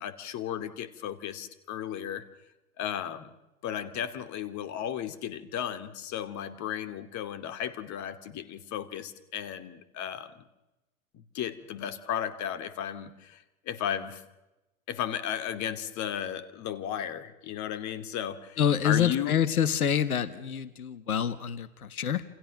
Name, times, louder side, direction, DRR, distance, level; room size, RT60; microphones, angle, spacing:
voice 1, 0.0-2.2 2.8-3.3 3.6-10.4 11.1-14.2 14.9-19.4, left 10 dB, 40° left, 11 dB, 2.7 m, -35 dB
voice 2, 18.6-22.2, left 8 dB, 80° left, 14 dB, 1.5 m, -27 dB
29.0 x 28.0 x 6.5 m, 0.99 s
hypercardioid pair, 90°, 43 cm